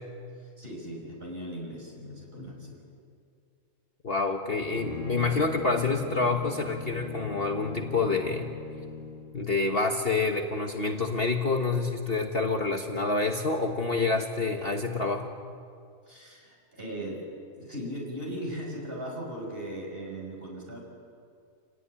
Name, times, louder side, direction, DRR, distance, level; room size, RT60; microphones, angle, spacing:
voice 1, 0.4-2.8 16.1-17.3 17.6-20.8, equal, 35° right, -1 dB, 6.7 m, -38 dB
voice 2, 4.0-8.5 9.3-15.3, left 3 dB, 40° left, 3 dB, 1.5 m, -27 dB
Bowed string instrument, 4.7-9.4, left 6 dB, 55° left, 1.5 m, -40 dB
28.5 x 18.0 x 10.0 m, 2.3 s
omnidirectional pair, 1.6 m